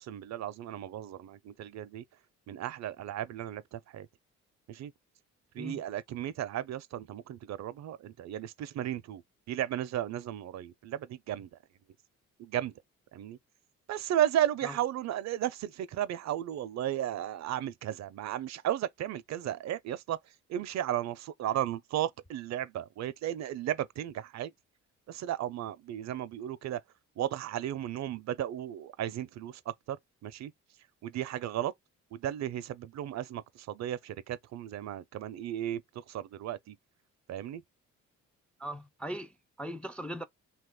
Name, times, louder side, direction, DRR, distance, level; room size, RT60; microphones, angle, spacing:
voice 1, 0.1-2.0 2.5-4.1 4.7-4.9 5.6-9.2 9.5-11.5 12.4-12.7 13.1-13.4 13.9-20.2 20.5-24.5 25.1-26.8 27.2-29.6 29.9-30.0 30.2-30.5 31.0-31.7 32.1-35.8 36.1-36.7 37.3-37.6, right 11 dB, 65° right, 0.5 m, -34 dB
voice 2, 38.6-40.3, equal, 5° left, 0.3 m, -39 dB
2.8 x 2.4 x 3.5 m
cardioid pair, 90°, 30 cm